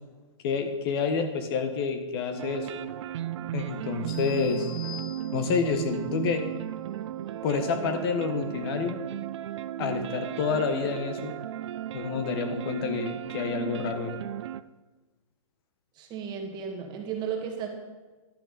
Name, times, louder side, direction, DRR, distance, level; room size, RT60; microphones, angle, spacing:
voice 1, 0.4-2.7 3.5-4.7 5.3-6.4 7.4-9.0 9.8-11.3 11.9-14.2, left 5 dB, 45° left, 7 dB, 1.2 m, -28 dB
sound 1, 2.4-14.6, right 12 dB, 55° right, 0.5 m, -35 dB
sound 2, 3.8-7.3, right 2 dB, 20° left, 3.1 m, -47 dB
sound 3, 4.1-5.8, left 10 dB, 80° left, 1.9 m, -45 dB
voice 2, 16.0-17.7, right 7 dB, 25° right, 3 dB, 1.6 m, -34 dB
11.5 x 9.9 x 4.1 m, 1.2 s
hypercardioid pair, 140°, 17 cm